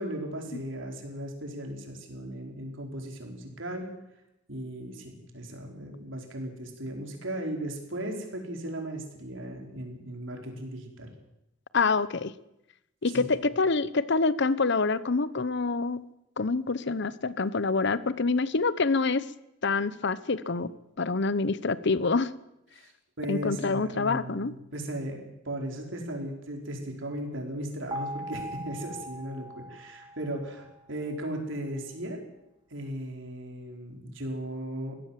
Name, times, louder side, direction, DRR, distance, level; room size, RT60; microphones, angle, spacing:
voice 1, 0.0-3.9 4.5-11.1 13.0-13.3 22.7-22.9 23.2-32.2 32.7-35.0, right 1 dB, 70° right, 2 dB, 5.0 m, -37 dB
voice 2, 11.7-12.3 13.0-16.1 16.4-19.3 19.6-20.7 21.0-22.3 23.3-24.5, left 4 dB, 60° left, 16 dB, 0.9 m, -26 dB
sound 1, 27.9-30.9, equal, 25° right, 1.5 m, -40 dB
23.0 x 17.0 x 7.6 m, 0.86 s
head